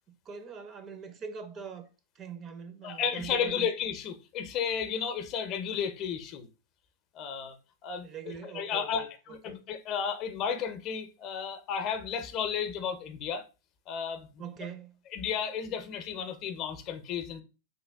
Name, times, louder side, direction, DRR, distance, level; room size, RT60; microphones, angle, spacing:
voice 1, 0.1-1.9 2.2-3.7 8.0-9.1 9.5-9.6 14.4-15.0, right 6 dB, 35° right, 0.6 m, -42 dB
voice 2, 2.8-6.5 7.1-7.6 7.8-13.5 13.9-14.4 15.1-17.4, left 7 dB, 45° left, 0.6 m, -33 dB
3.1 x 2.2 x 3.3 m
hypercardioid pair, 105°, 0 cm